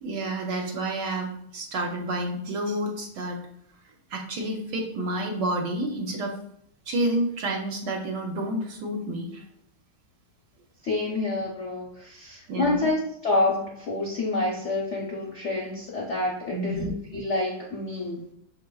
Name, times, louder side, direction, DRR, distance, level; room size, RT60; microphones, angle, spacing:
voice 1, 0.0-3.4 4.1-6.3 6.9-9.4 12.5-12.9 16.5-16.9, right 1 dB, 70° right, 1 dB, 1.1 m, -29 dB
voice 2, 10.8-18.2, left 2 dB, 65° left, -3 dB, 0.6 m, -28 dB
6.0 x 3.0 x 2.2 m, 0.71 s
omnidirectional pair, 2.2 m